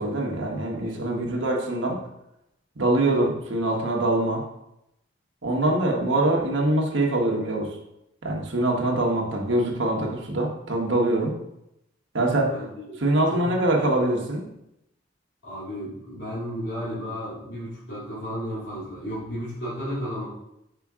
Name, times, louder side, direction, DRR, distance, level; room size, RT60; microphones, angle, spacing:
voice 1, 0.0-2.0 2.8-4.4 5.4-7.7 8.2-11.3 12.1-12.5 13.0-14.4, right 1 dB, 75° right, -1 dB, 1.3 m, -24 dB
voice 2, 0.8-1.5 12.5-13.0 13.3-13.9 15.4-20.3, equal, 65° left, -11 dB, 2.4 m, -34 dB
5.9 x 5.0 x 3.7 m, 0.83 s
head